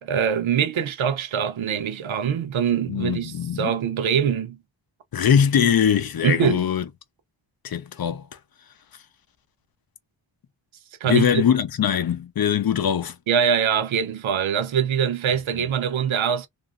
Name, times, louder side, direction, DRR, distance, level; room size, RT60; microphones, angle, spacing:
voice 1, 0.0-4.6 6.2-6.6 11.0-11.4 13.3-16.5, right 8 dB, 80° right, 0.7 m, -23 dB
voice 2, 2.9-3.7 5.1-6.8 7.6-8.2 11.0-13.1, left 8 dB, 50° left, 0.6 m, -21 dB
2.8 x 2.5 x 2.4 m
wide cardioid pair, 135°, 47 cm